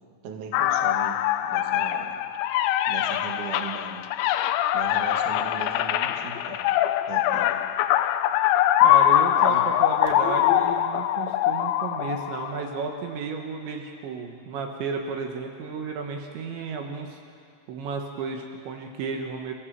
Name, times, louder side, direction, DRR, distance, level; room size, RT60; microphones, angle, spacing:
voice 1, 0.2-2.2 2.9-4.0 4.7-6.6 7.1-7.6 9.3-9.7, right 6 dB, 55° right, 2 dB, 2.5 m, -38 dB
sound 1, 0.5-12.8, left 12 dB, 90° left, 2.5 m, -23 dB
sound 2, 4.7-8.1 8.4-8.5 8.8-9.0 9.2-10.8, left 6 dB, 65° left, 4.1 m, -41 dB
voice 2, 8.8-17.2 17.7-19.5, right 5 dB, 70° right, 3 dB, 3.4 m, -33 dB
28.0 x 17.0 x 7.5 m, 2.2 s
omnidirectional pair, 5.9 m